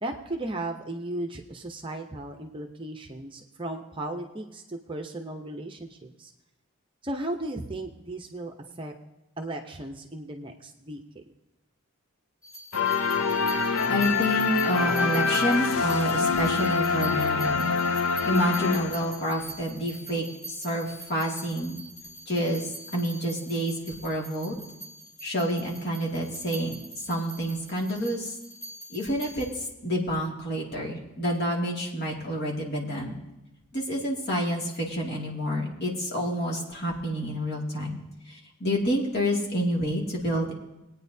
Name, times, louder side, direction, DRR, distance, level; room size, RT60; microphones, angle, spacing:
voice 1, 0.0-6.3 7.0-8.9 9.4-11.2, right 1 dB, 25° right, 3 dB, 0.7 m, -36 dB
sound 1, 12.4-29.5, right 2 dB, 15° left, 2.0 m, -44 dB
sound 2, 12.7-19.3, left 5 dB, 80° left, 0.6 m, -25 dB
voice 2, 13.9-17.6 18.2-21.8 22.3-24.6 25.2-28.4 28.9-33.2 33.7-38.0 38.3-40.6, equal, 45° left, -2 dB, 2.3 m, -28 dB
20.0 x 9.2 x 2.7 m, 0.97 s
head